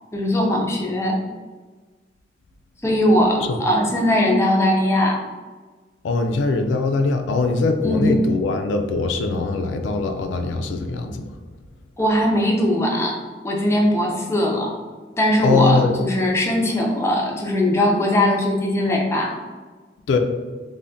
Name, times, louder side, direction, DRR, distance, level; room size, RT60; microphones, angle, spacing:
voice 1, 0.1-1.2 2.8-5.2 7.8-8.2 12.0-13.2 13.4-14.7 15.2-19.3, left 1 dB, 15° left, -1 dB, 0.4 m, -20 dB
voice 2, 6.0-11.3 15.4-15.9 20.1-20.2, left 3 dB, 85° left, 5 dB, 0.3 m, -21 dB
3.4 x 2.1 x 2.5 m, 1.4 s
head